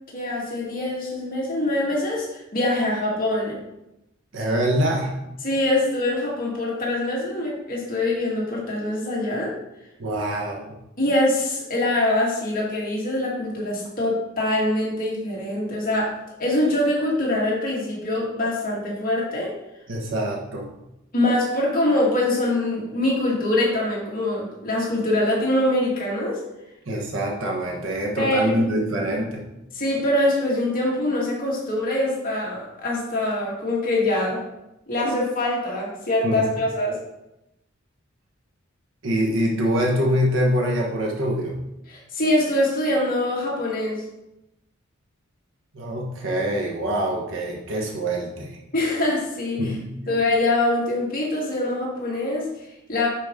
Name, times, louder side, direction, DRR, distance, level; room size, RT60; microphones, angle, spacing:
voice 1, 0.1-3.6 5.4-9.5 11.0-16.1 16.4-19.5 21.1-26.4 28.2-28.5 29.7-34.4 34.9-37.0 41.9-44.0 48.7-49.7 50.1-53.1, left 1 dB, 45° left, -4 dB, 2.1 m, -24 dB
voice 2, 4.3-5.2 10.0-10.8 19.9-20.7 26.9-29.4 36.2-36.4 39.0-41.5 45.7-48.6 49.6-50.2, equal, 65° right, -1 dB, 1.3 m, -24 dB
10.5 x 5.1 x 3.8 m, 0.90 s
head